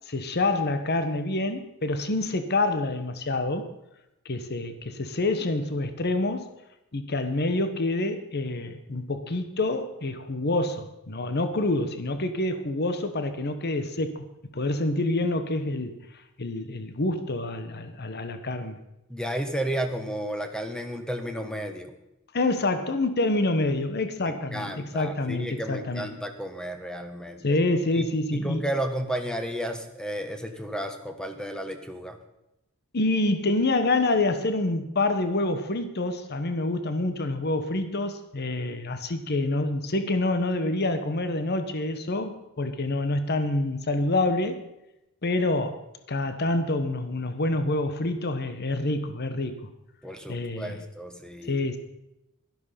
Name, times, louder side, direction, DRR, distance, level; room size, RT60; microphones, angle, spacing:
voice 1, 0.1-3.7 4.2-6.5 6.9-14.2 14.5-15.9 16.4-18.8 22.3-26.1 27.4-28.6 32.9-44.6 45.2-45.8 46.1-49.7 50.3-50.8 51.5-51.8, left 2 dB, 50° left, 9 dB, 1.2 m, -27 dB
voice 2, 19.1-21.9 24.3-27.6 27.9-28.0 28.3-32.2 50.0-51.6, right 1 dB, 5° left, 6 dB, 1.3 m, -33 dB
12.5 x 12.0 x 5.8 m, 0.89 s
head